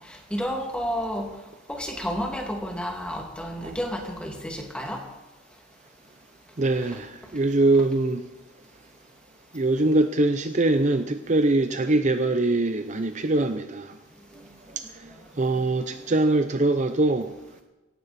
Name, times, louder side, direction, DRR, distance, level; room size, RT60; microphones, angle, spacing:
voice 1, 0.1-1.3 1.7-5.0 6.8-6.9 15.6-15.7, equal, 5° left, 1 dB, 2.4 m, -31 dB
voice 2, 6.6-8.2 9.5-14.0 15.0-15.1 15.4-17.3, right 2 dB, 35° right, 8 dB, 0.6 m, -23 dB
17.5 x 16.0 x 4.3 m, 1.1 s
head